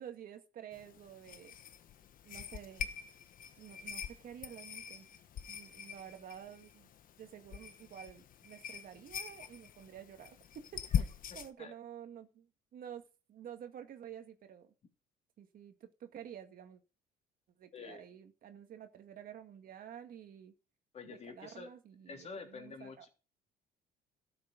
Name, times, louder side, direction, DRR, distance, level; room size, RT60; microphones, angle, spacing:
voice 1, 0.0-1.5 2.2-2.9 3.6-5.1 5.5-6.9 7.2-11.0 11.3-13.0 13.3-14.7 15.4-16.8 17.6-20.5 21.0-23.1, right 9 dB, 55° right, 7 dB, 1.9 m, -50 dB
sound 1, 0.7-11.5, left 8 dB, 55° left, 1.2 m, -42 dB
voice 2, 17.7-18.1 20.9-21.7 22.1-23.1, left 5 dB, 40° left, 3 dB, 3.4 m, -47 dB
12.5 x 6.9 x 5.1 m, 0.34 s
cardioid pair, 110°, 17 cm